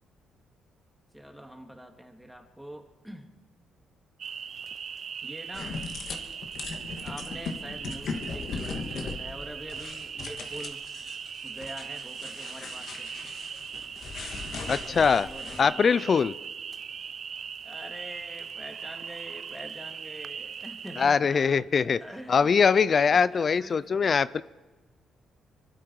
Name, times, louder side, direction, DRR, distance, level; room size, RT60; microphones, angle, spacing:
voice 1, 1.1-3.3 5.2-5.8 7.0-10.8 11.4-13.1 14.8-16.2 17.6-21.6 22.0-22.5 22.9-24.2, right 1 dB, 5° right, 4 dB, 2.1 m, -44 dB
sound 1, 4.2-21.1, right 7 dB, 50° right, 0.4 m, -39 dB
sound 2, 5.5-15.6, left 4 dB, 60° left, 2.1 m, -39 dB
voice 2, 14.7-15.3 15.6-16.3 21.0-22.0 22.3-24.4, left 6 dB, 45° left, 17 dB, 0.4 m, -22 dB
24.5 x 12.5 x 4.7 m, 1.2 s
cardioid pair, 90°, 0 cm